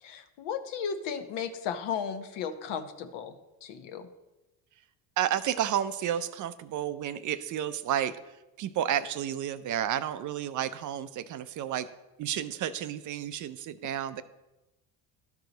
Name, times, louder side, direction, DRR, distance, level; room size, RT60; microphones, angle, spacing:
voice 1, 0.0-4.1, left 7 dB, 65° left, 9 dB, 0.9 m, -35 dB
voice 2, 5.2-11.9 12.2-14.2, right 10 dB, 45° right, 13 dB, 0.5 m, -31 dB
12.0 x 4.8 x 3.9 m, 1.0 s
supercardioid pair, 85°, 44 cm